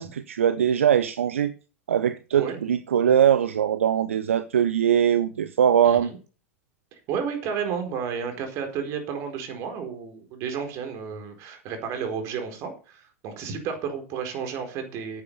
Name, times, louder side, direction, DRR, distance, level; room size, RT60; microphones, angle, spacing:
voice 1, 0.0-1.5 1.9-6.1, right 9 dB, 70° right, 0.7 m, -21 dB
voice 2, 5.8-6.2 7.1-15.2, right 6 dB, 45° right, 4.4 m, -32 dB
9.9 x 8.6 x 6.7 m
figure-of-eight pair, 85°, 7 cm